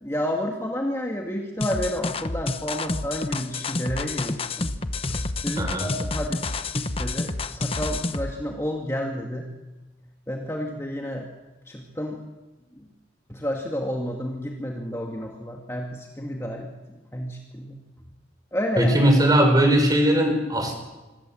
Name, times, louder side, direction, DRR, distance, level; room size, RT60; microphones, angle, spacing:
voice 1, 0.0-4.7 5.1-9.5 10.3-11.3 11.7-12.2 13.3-16.7 17.1-17.8 18.5-18.9, equal, 15° left, 0 dB, 2.0 m, -30 dB
sound 1, 1.6-8.3, left 3 dB, 30° left, 1.0 m, -29 dB
voice 2, 5.6-5.9 18.8-20.8, right 1 dB, 20° right, 4 dB, 5.9 m, -19 dB
26.0 x 24.5 x 7.6 m, 1.1 s
head